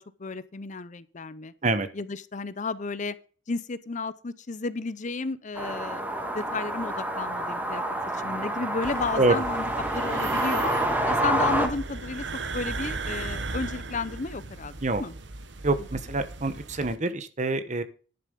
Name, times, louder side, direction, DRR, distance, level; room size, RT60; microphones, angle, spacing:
voice 1, 0.0-1.5 1.9-3.2 3.5-6.0 6.3-7.8 8.1-10.7 11.1-15.1 15.8-15.9, left 4 dB, 40° left, 16 dB, 0.7 m, -33 dB
sound 1, 5.6-11.7, right 1 dB, 10° right, 1.7 m, -28 dB
sound 2, 8.8-17.0, right 3 dB, 70° right, 1.1 m, -37 dB
voice 2, 15.6-17.8, right 2 dB, 40° right, 11 dB, 1.0 m, -25 dB
11.0 x 6.8 x 5.2 m, 0.38 s
head